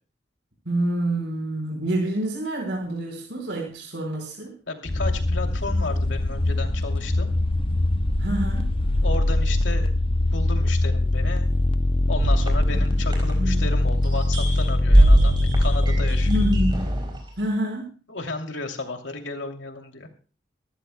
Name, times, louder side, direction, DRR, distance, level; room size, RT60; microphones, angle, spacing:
voice 1, 0.6-4.5 8.2-8.7 12.7-12.8 13.3-13.6 16.3-16.9 17.4-18.0, right 1 dB, 70° right, -1 dB, 4.6 m, -27 dB
voice 2, 4.7-7.3 9.0-9.9 10.3-11.5 12.1-16.4 18.1-20.1, left 3 dB, 90° left, 4 dB, 2.7 m, -33 dB
sound 1, 4.9-16.7, left 2 dB, 30° left, 0.6 m, -22 dB
sound 2, 12.2-13.7 14.1-17.2, right 1 dB, 25° right, 4.5 m, -21 dB
24.5 x 14.5 x 2.2 m, 0.37 s
head